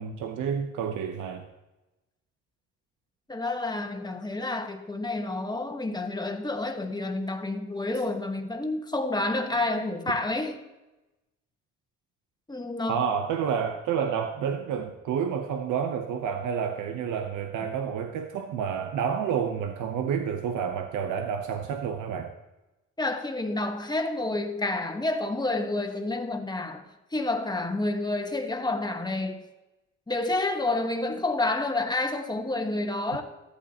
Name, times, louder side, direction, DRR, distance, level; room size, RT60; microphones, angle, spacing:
voice 1, 0.0-1.5 12.9-22.3, right 7 dB, 80° right, 0.9 m, -29 dB
voice 2, 3.3-10.6 12.5-13.1 23.0-26.8 27.1-29.4 30.1-33.2, left 2 dB, 15° left, 1.3 m, -29 dB
14.0 x 12.0 x 2.9 m
cardioid pair, 90°, 30 cm